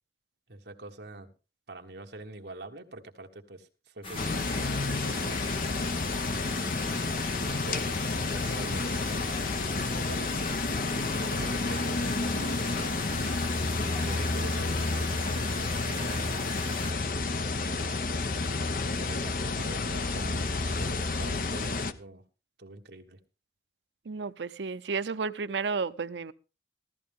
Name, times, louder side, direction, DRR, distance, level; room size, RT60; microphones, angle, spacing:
voice 1, 0.5-1.3 1.7-5.4 6.3-7.1 7.4-9.6 9.9-10.4 11.1-13.0 13.9-16.4 17.5-18.1 18.8-22.2 22.6-23.2, right 2 dB, 75° right, 1.4 m, -45 dB
sound 1, 4.0-16.9, left 2 dB, 30° left, 1.7 m, -40 dB
sound 2, 4.2-21.9, left 3 dB, 50° left, 0.8 m, -30 dB
voice 2, 24.1-26.3, right 5 dB, 90° right, 0.6 m, -32 dB
15.0 x 13.5 x 3.6 m
head